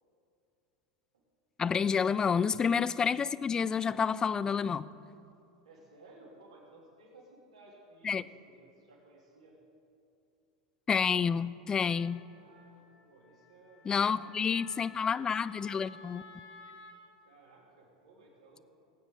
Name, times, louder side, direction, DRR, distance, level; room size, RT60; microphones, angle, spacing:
voice 1, 1.6-4.9 8.0-8.2 10.9-12.2 13.9-16.2, left 6 dB, 20° left, 17 dB, 0.3 m, -29 dB
voice 2, 5.6-9.5 12.3-14.6 17.2-18.6, right 2 dB, 80° right, -3 dB, 2.8 m, -58 dB
Wind instrument woodwind instrument, 11.8-17.0, left 4 dB, 50° left, 1.6 m, -54 dB
19.0 x 9.0 x 3.8 m, 2.6 s
hypercardioid pair, 85°, 3 cm